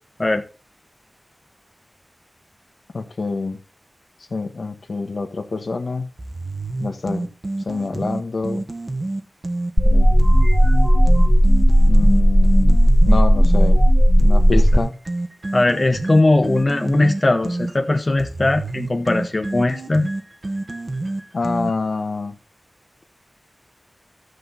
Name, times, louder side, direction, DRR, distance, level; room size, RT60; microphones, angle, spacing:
voice 1, 2.9-3.6 4.3-6.1 6.8-7.3 7.6-8.6 9.9-10.2 11.9-13.8 14.2-15.0 21.3-22.4, left 3 dB, 75° left, 1.3 m, -26 dB
sound 1, 6.2-9.7 10.2-13.7 14.2-22.0, right 2 dB, 40° right, 1.4 m, -29 dB
sound 2, 9.8-14.8, equal, 5° right, 0.6 m, -13 dB
voice 2, 15.5-20.1, left 2 dB, 40° left, 0.9 m, -19 dB
13.0 x 6.6 x 4.0 m
wide cardioid pair, 60°, 0 cm